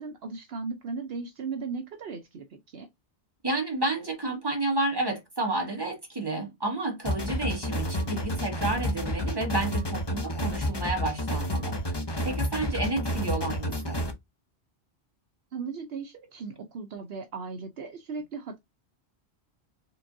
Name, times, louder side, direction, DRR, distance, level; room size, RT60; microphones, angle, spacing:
voice 1, 0.0-2.9 15.5-18.6, right 4 dB, 70° right, 0.9 m, -37 dB
voice 2, 3.4-12.0 12.2-14.0, right 2 dB, 20° right, 1.8 m, -30 dB
sound 1, 7.0-14.1, left 1 dB, 25° left, 0.8 m, -30 dB
4.4 x 3.5 x 2.6 m
omnidirectional pair, 1.1 m